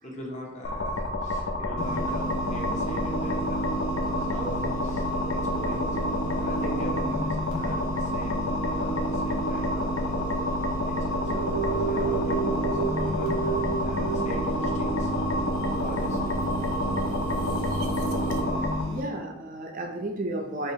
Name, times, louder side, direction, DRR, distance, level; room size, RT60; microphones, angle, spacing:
voice 1, 0.0-10.5 10.8-15.1 15.7-16.3, equal, 35° left, -2 dB, 0.8 m, -41 dB
sound 1, 0.6-18.8, left 2 dB, 60° left, 0.5 m, -30 dB
sound 2, 1.8-19.0, right 1 dB, 85° left, 1.0 m, -31 dB
sound 3, 11.3-18.4, right 4 dB, 90° right, 0.6 m, -32 dB
voice 2, 17.5-18.2 18.9-20.7, right 1 dB, 40° right, 2 dB, 0.4 m, -34 dB
4.9 x 2.9 x 2.7 m, 0.99 s
head